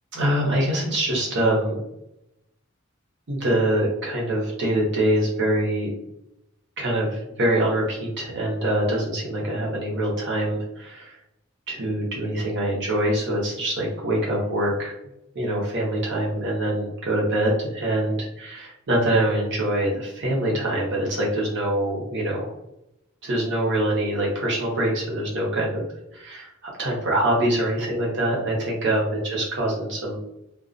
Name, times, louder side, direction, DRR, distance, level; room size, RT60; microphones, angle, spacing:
voice 1, 0.1-1.8 3.3-5.9 6.8-11.1 11.7-14.9 15.3-22.5 23.2-25.8 26.3-30.2, right 1 dB, 60° right, -3 dB, 0.8 m, -24 dB
2.3 x 2.2 x 2.5 m, 0.84 s
head